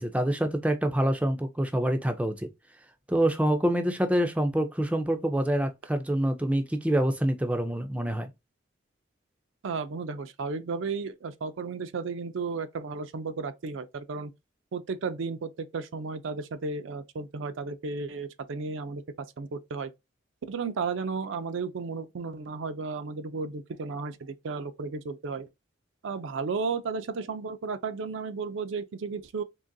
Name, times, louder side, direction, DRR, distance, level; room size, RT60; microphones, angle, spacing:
voice 1, 0.0-2.5 3.1-8.3, right 1 dB, 5° right, 0.4 m, -26 dB
voice 2, 9.6-14.3 14.7-19.9 20.5-25.5 26.0-29.4, right 4 dB, 70° right, 0.4 m, -34 dB
3.8 x 2.9 x 2.6 m
head